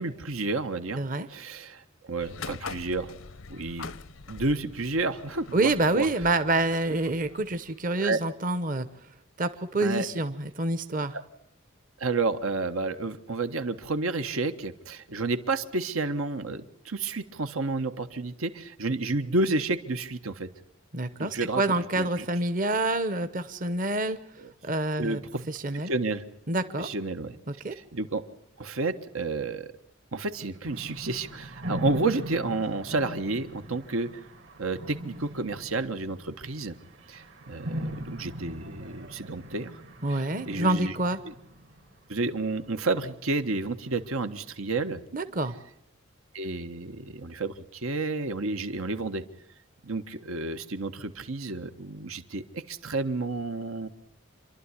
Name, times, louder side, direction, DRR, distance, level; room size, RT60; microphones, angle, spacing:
voice 1, 0.0-1.0 1.3-3.1 3.5-3.9 4.3-6.1 7.9-8.2 9.8-10.0 12.0-20.5 21.2-21.6 21.9-22.2 24.4-24.5 25.0-25.5 25.9-26.2 26.8-27.4 27.9-28.2 28.6-29.7 30.1-34.1 34.6-36.7 37.1-39.7 40.1-40.9 41.2-41.3 42.1-45.0 46.3-49.2 49.8-53.9, right 3 dB, 90° right, 8 dB, 1.4 m, -30 dB
voice 2, 1.0-1.3 5.5-8.9 9.4-11.2 20.9-24.2 24.6-25.2 25.5-25.9 26.5-26.9 27.6-27.7 40.0-41.2 45.1-45.5, right 2 dB, 40° right, 10 dB, 0.9 m, -27 dB
sound 1, 2.2-8.0, left 5 dB, 75° left, 0.8 m, -44 dB
sound 2, 30.6-42.7, equal, 65° right, 2.4 m, -40 dB
27.0 x 12.0 x 9.8 m, 0.73 s
head